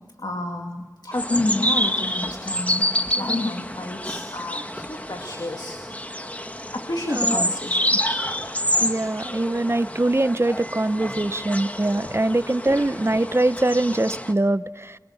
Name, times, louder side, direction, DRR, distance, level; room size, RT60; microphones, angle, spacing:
voice 1, 0.2-5.8 6.7-8.0 12.0-12.1, left 2 dB, 75° left, 3 dB, 2.3 m, -30 dB
sound 1, 1.1-14.3, equal, 20° left, 1.6 m, -28 dB
voice 2, 7.1-7.5 8.8-15.0, right 2 dB, 35° right, 14 dB, 0.8 m, -23 dB
25.0 x 23.5 x 7.1 m, 1.3 s
wide cardioid pair, 45°, 7 cm